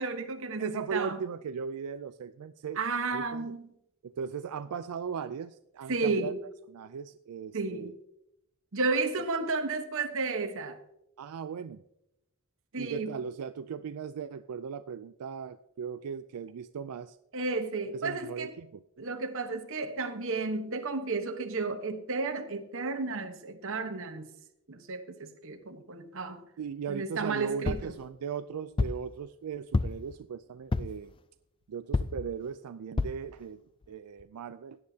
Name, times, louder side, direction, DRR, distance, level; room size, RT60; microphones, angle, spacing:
voice 1, 0.0-1.2 2.8-3.7 5.9-6.4 7.5-7.9 8.7-10.8 12.7-13.1 17.3-18.5 19.0-24.3 24.7-26.4 26.9-27.9, right 3 dB, 60° right, 7 dB, 1.1 m, -32 dB
voice 2, 0.6-2.8 3.1-3.5 4.0-6.3 6.7-7.9 11.2-11.8 12.8-17.2 17.9-18.8 26.6-31.1 31.7-33.6 33.9-34.8, right 6 dB, 90° right, 11 dB, 0.4 m, -38 dB
sound 1, 27.7-28.0 28.8-29.1 29.7-30.1 30.7-31.0 31.9-32.3 33.0-33.3 33.8-33.9 34.2-34.3, left 3 dB, 25° left, 0.3 m, -29 dB
17.0 x 9.5 x 2.8 m, 0.83 s
head